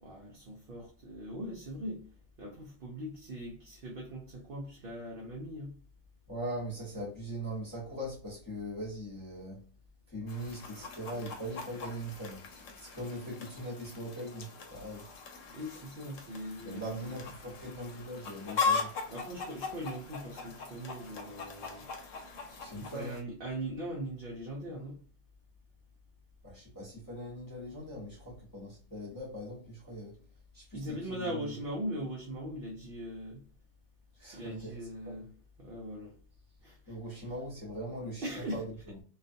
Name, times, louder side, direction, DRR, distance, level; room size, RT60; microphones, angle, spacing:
voice 1, 0.0-2.0 2.4-5.7 15.5-17.1 19.1-21.9 22.7-25.0 30.7-33.4 34.3-35.3 35.6-36.1 36.6-37.0 38.2-38.6, equal, 60° right, -1 dB, 0.6 m, -40 dB
voice 2, 6.3-9.6 10.1-15.0 16.6-18.9 22.6-23.2 26.4-30.2 30.5-31.5 34.1-34.8 35.0-35.2 36.9-39.0, equal, 20° left, -6 dB, 0.7 m, -41 dB
Chicken rooster, 10.3-23.2, left 5 dB, 75° left, 0.9 m, -39 dB
2.4 x 2.3 x 2.5 m, 0.41 s
omnidirectional pair, 1.4 m